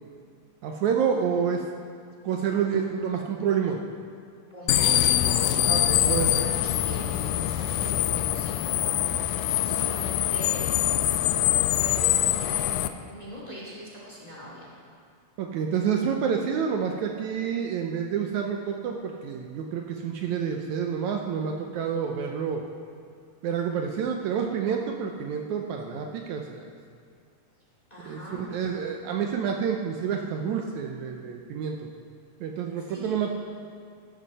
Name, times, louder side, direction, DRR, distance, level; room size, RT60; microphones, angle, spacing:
voice 1, 0.6-1.6 2.2-3.8 5.7-6.3 15.4-22.6 23.4-26.7 28.0-31.8 32.4-33.3, right 7 dB, 75° right, 2 dB, 2.0 m, -28 dB
voice 2, 4.5-8.7 9.4-10.7 11.2-14.7 27.9-28.7 32.8-33.2, equal, 10° left, -5 dB, 2.9 m, -41 dB
sound 1, 4.7-12.9, left 13 dB, 80° left, 1.9 m, -24 dB
14.5 x 13.0 x 4.1 m, 2.2 s
omnidirectional pair, 3.6 m